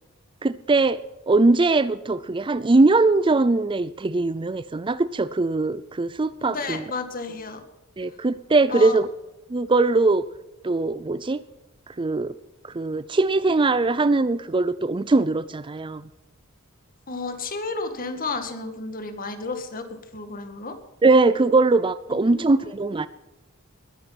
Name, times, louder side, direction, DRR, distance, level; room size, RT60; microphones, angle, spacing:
voice 1, 0.4-1.0 1.3-6.8 8.0-9.1 9.5-10.2 10.6-11.4 12.0-12.3 12.6-16.0 21.0-23.1, right 3 dB, 25° right, 16 dB, 0.5 m, -21 dB
voice 2, 6.4-7.6 8.7-9.0 17.1-20.8 22.1-22.7, left 3 dB, 40° left, 8 dB, 2.0 m, -32 dB
21.0 x 9.5 x 6.0 m, 1.1 s
head